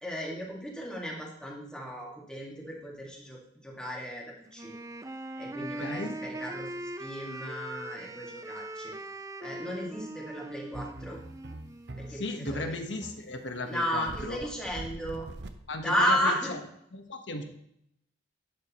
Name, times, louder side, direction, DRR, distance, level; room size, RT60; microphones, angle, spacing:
voice 1, 0.0-4.2 4.5-4.7 5.4-6.7 7.0-8.9 9.4-11.2 12.0-12.8 13.7-15.3 15.8-16.5, equal, 5° left, -3 dB, 2.1 m, -34 dB
Wind instrument woodwind instrument, 4.5-12.4, right 1 dB, 15° right, 0.5 m, -41 dB
voice 2, 5.6-6.2 12.1-14.4 15.7-16.3 16.9-17.4, left 2 dB, 75° left, 5 dB, 1.3 m, -36 dB
sound 1, 10.7-16.3, right 2 dB, 65° right, 0.8 m, -43 dB
11.5 x 9.4 x 3.0 m, 0.74 s
head